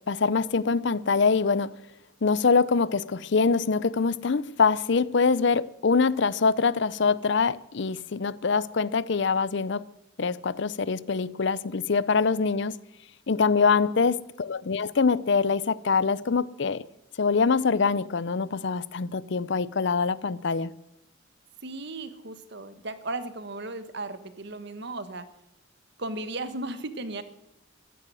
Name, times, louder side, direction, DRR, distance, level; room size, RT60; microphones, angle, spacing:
voice 1, 0.1-1.7 2.2-9.8 10.2-12.7 13.3-16.8 17.2-20.7, left 5 dB, 60° left, 0.6 m, -24 dB
voice 2, 13.6-14.0 21.6-25.3 26.0-27.2, right 2 dB, 60° right, 1.3 m, -36 dB
14.5 x 11.5 x 7.7 m
head